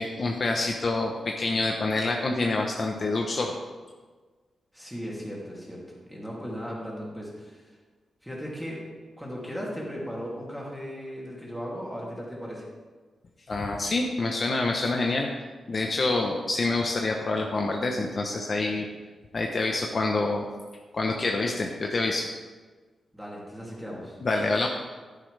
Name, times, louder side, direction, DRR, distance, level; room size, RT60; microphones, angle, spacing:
voice 1, 0.0-3.5 13.5-15.3 15.7-18.9 19.3-20.4 20.9-22.3 24.2-24.7, left 2 dB, 40° left, 1 dB, 0.8 m, -27 dB
voice 2, 4.7-5.8 6.1-7.6 8.2-8.8 9.2-12.6 23.1-24.2, equal, ahead, -5 dB, 2.8 m, -37 dB
11.5 x 10.5 x 3.3 m, 1.4 s
wide cardioid pair, 140°, 0 cm